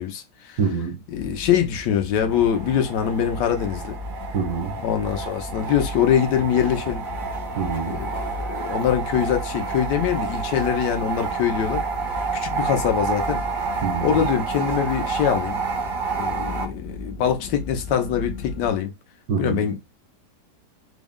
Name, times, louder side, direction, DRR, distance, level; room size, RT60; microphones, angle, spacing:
voice 1, 0.0-0.6 1.1-4.0 4.8-7.0 7.9-11.8 12.3-13.4 14.0-15.6 16.1-18.9 19.4-19.8, left 9 dB, 90° left, 1.3 m, -23 dB
voice 2, 0.6-1.0 4.3-4.8 7.6-8.0 13.8-14.2 19.3-19.6, right 5 dB, 75° right, 1.4 m, -25 dB
sound 1, 1.1-18.8, left 3 dB, 70° left, 0.7 m, -36 dB
sound 2, 2.3-16.7, right 6 dB, 60° right, 0.5 m, -30 dB
4.3 x 2.1 x 3.6 m
omnidirectional pair, 1.8 m